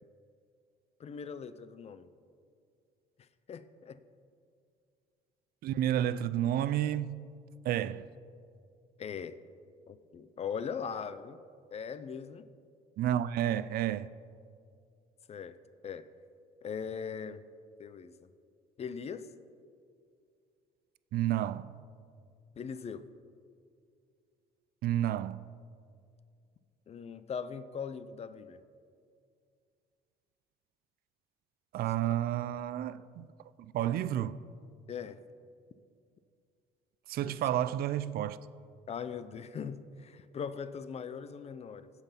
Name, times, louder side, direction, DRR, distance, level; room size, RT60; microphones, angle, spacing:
voice 1, 1.0-2.1 3.5-4.0 9.0-9.4 9.9-11.4 11.7-12.5 15.3-15.6 15.8-16.0 16.6-17.4 17.8-18.3 18.8-19.3 22.6-23.0 26.9-28.6 34.9-35.2 37.2-37.3 38.9-41.9, left 6 dB, 40° left, 0.6 m, -40 dB
voice 2, 5.6-7.3 7.6-8.1 13.0-14.1 21.1-21.7 24.8-25.4 31.7-33.3 33.6-34.4 37.1-38.4, right 11 dB, 65° right, 0.4 m, -31 dB
16.5 x 5.8 x 5.7 m
cardioid pair, 110°, 17 cm